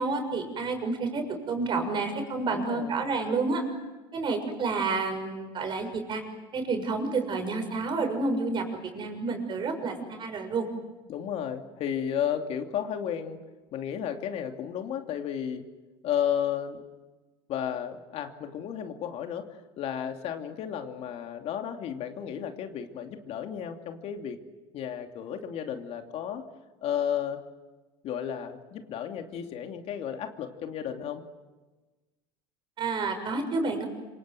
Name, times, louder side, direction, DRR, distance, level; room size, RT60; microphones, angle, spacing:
voice 1, 0.0-3.6 4.1-6.2 6.5-10.7 32.8-33.9, right 3 dB, 40° right, 5 dB, 6.8 m, -29 dB
voice 2, 2.5-3.0 11.1-13.4 13.7-15.6 16.0-16.8 17.5-24.4 24.7-26.4 26.8-27.4 28.0-31.3, left 9 dB, 55° left, 5 dB, 2.9 m, -33 dB
27.0 x 26.0 x 7.8 m, 1.2 s
supercardioid pair, 110°, 13 cm